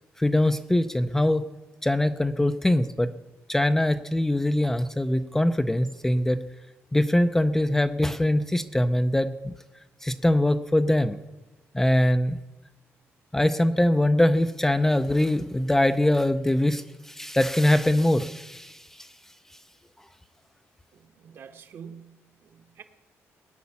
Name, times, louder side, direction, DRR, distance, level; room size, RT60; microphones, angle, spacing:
voice 1, 0.2-1.5 1.8-3.1 3.5-6.4 6.9-9.5 10.0-11.2 11.7-12.4 13.3-19.1, left 1 dB, 10° left, 9 dB, 0.5 m, -23 dB
voice 2, 20.9-22.8, right 7 dB, 55° right, 6 dB, 1.3 m, -47 dB
18.5 x 9.6 x 7.0 m, 1.1 s
cardioid pair, 150°, 5 cm